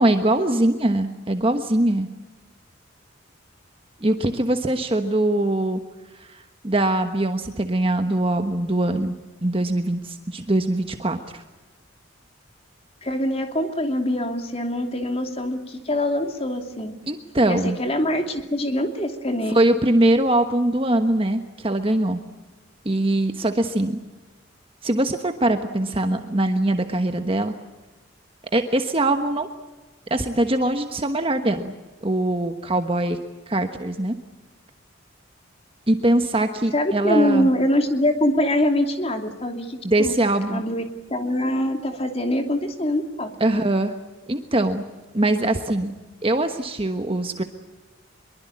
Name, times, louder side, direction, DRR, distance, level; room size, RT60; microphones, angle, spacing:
voice 1, 0.0-2.1 4.0-5.8 6.1-9.1 9.4-11.4 17.1-17.8 19.5-22.2 22.8-24.0 24.8-27.5 28.5-29.5 30.1-31.7 32.0-33.2 33.5-34.1 35.9-37.5 39.8-40.6 43.4-43.9 44.3-44.8 45.1-45.9 46.2-47.4, right 1 dB, 25° right, 6 dB, 1.2 m, -22 dB
voice 2, 13.0-16.9 17.5-19.6 36.7-40.1 40.5-40.8 41.1-43.6, left 1 dB, 30° left, 5 dB, 2.8 m, -24 dB
24.0 x 23.0 x 8.6 m, 1.2 s
head